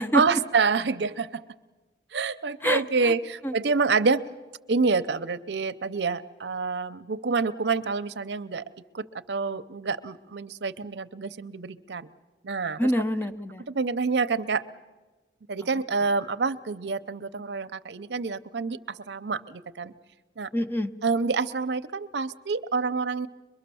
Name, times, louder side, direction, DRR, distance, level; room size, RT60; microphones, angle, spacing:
voice 1, 0.1-1.4 2.1-4.2 4.7-8.6 8.9-12.1 12.4-12.9 13.7-14.6 15.5-19.9 20.4-20.5 21.0-23.3, right 4 dB, 75° right, 12 dB, 0.7 m, -27 dB
voice 2, 2.6-3.1 3.4-3.5 12.8-13.6 20.5-20.9, equal, 10° left, 9 dB, 0.6 m, -26 dB
23.0 x 22.0 x 7.0 m, 1.2 s
head